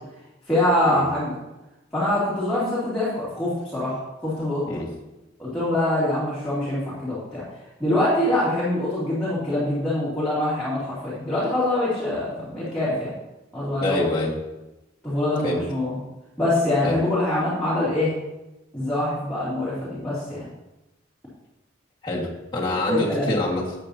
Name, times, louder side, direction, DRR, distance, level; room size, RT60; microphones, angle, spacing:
voice 1, 0.5-1.4 1.9-4.6 5.4-7.4 7.8-13.1 13.5-14.1 15.0-16.0 16.4-18.2 18.7-20.5 22.7-23.3, left 1 dB, 5° left, -11 dB, 2.8 m, -24 dB
voice 2, 13.8-14.3 15.4-15.6 16.8-17.0 22.0-23.8, left 1 dB, 25° left, -5 dB, 1.8 m, -26 dB
13.0 x 8.5 x 2.8 m, 1.0 s
head